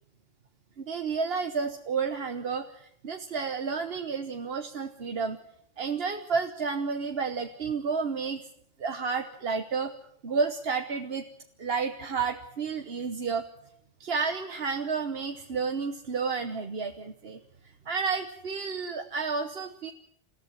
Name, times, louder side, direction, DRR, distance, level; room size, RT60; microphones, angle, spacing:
voice 1, 0.8-5.4 5.8-8.4 8.8-9.9 10.2-11.2 11.6-13.4 14.0-17.4 17.9-19.9, right 5 dB, 60° right, 6 dB, 1.3 m, -31 dB
29.0 x 14.5 x 7.9 m, 0.72 s
omnidirectional pair, 1.2 m